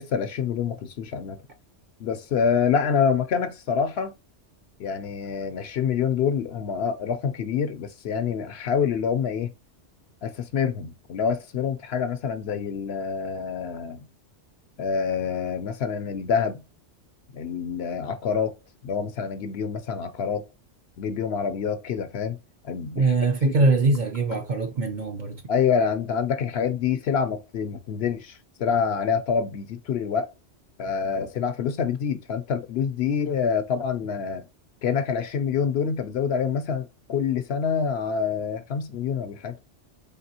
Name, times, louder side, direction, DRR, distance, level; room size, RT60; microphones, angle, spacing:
voice 1, 0.0-1.4 2.0-4.1 4.8-9.5 10.2-14.0 14.8-16.6 17.3-18.5 18.8-20.4 21.0-22.4 22.6-23.1 23.4-23.5 25.5-30.3 30.8-34.5 34.8-39.6, left 6 dB, 65° left, 0.8 m, -26 dB
voice 2, 23.0-25.4, right 3 dB, 50° right, 0.6 m, -22 dB
4.1 x 3.3 x 2.7 m
omnidirectional pair, 1.2 m